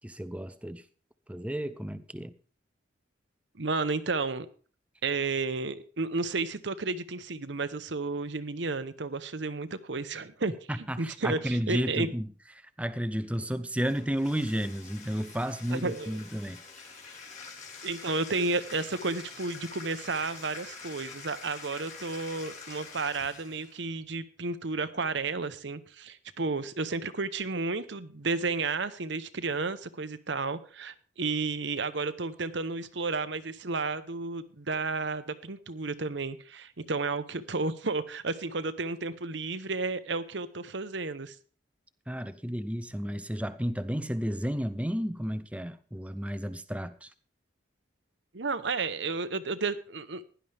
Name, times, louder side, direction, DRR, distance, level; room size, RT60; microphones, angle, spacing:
voice 1, 0.0-0.8 1.3-2.3 10.7-12.3 12.8-16.6 42.1-47.1, equal, 5° right, 13 dB, 0.6 m, -32 dB
voice 2, 3.6-4.5 5.0-12.1 15.7-16.2 17.8-41.3 48.3-50.2, right 3 dB, 70° right, 12 dB, 0.9 m, -32 dB
Bathtub (filling or washing), 13.8-23.8, left 4 dB, 35° left, 3.3 m, -46 dB
16.5 x 11.5 x 3.5 m, 0.39 s
head